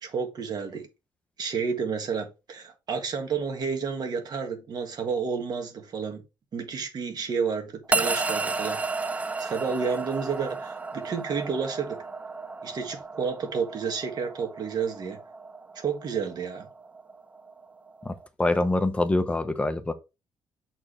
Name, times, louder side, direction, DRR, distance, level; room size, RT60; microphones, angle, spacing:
voice 1, 0.0-0.9 1.4-6.2 6.5-8.8 9.4-12.0 12.6-15.2 15.8-16.7, right 5 dB, 55° right, 1.8 m, -30 dB
sound 1, 7.9-18.3, right 3 dB, 15° right, 0.4 m, -33 dB
voice 2, 18.0-19.9, left 2 dB, 15° left, 0.8 m, -25 dB
7.2 x 4.4 x 3.2 m
cardioid pair, 110°, 8 cm